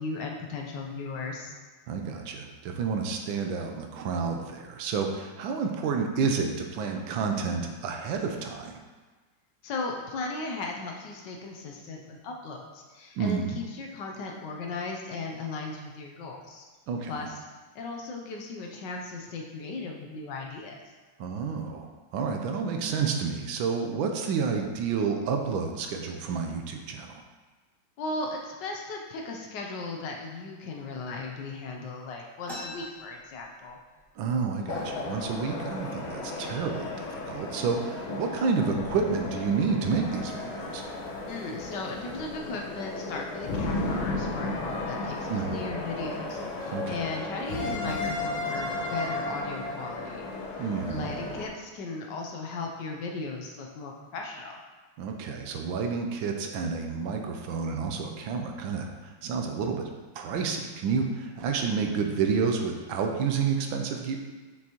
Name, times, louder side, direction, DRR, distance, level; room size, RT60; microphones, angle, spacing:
voice 1, 0.0-1.5 9.6-16.6 17.1-17.4 17.7-20.9 28.0-33.8 41.3-50.3 50.9-54.6, left 3 dB, 70° left, 1 dB, 1.2 m, -37 dB
voice 2, 1.9-8.7 13.2-13.6 16.9-17.1 21.2-27.2 34.2-40.8 45.3-45.6 46.7-47.0 50.6-51.1 55.0-59.8 60.1-64.2, right 5 dB, 80° right, 3 dB, 1.4 m, -30 dB
sound 1, 32.4-34.1 34.4-34.5 34.8-35.4 36.0-36.1 36.8-37.0 37.5-37.9, left 1 dB, ahead, 1.0 m, -43 dB
sound 2, 34.7-51.5, left 2 dB, 90° left, 1.8 m, -34 dB
6.1 x 5.8 x 3.0 m, 1.3 s
omnidirectional pair, 2.2 m